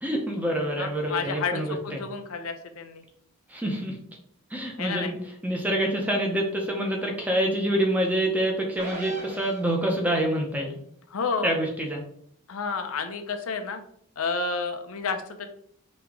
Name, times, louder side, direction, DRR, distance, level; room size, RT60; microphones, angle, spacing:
voice 1, 0.0-2.0 3.5-4.0 4.5-5.2 5.4-10.8 11.4-12.0, right 1 dB, 5° right, 0 dB, 0.7 m, -26 dB
voice 2, 0.8-3.0 4.8-5.1 11.1-11.5 12.5-13.8 14.2-15.5, left 4 dB, 75° left, 6 dB, 0.6 m, -30 dB
sound 1, 8.8-10.2, right 2 dB, 35° right, 1.8 m, -39 dB
5.1 x 2.9 x 3.5 m, 0.67 s
head